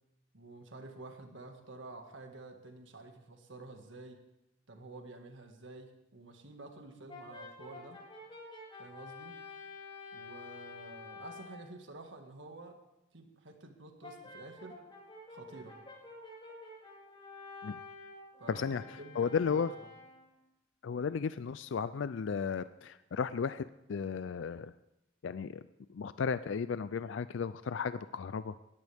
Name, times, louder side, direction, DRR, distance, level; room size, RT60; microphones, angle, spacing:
voice 1, 0.3-4.2 4.7-8.0 8.8-9.4 10.1-12.8 13.1-14.8 15.3-15.8 18.4-19.9, right 2 dB, 70° right, 4 dB, 1.8 m, -50 dB
Brass instrument, 7.1-11.7 14.0-20.4, left 3 dB, 25° left, 5.9 m, -49 dB
voice 2, 18.5-18.8 19.2-19.7 20.8-24.7 25.2-25.6 25.9-28.5, left 6 dB, 70° left, 14 dB, 0.4 m, -34 dB
19.5 x 14.5 x 3.5 m, 0.89 s
head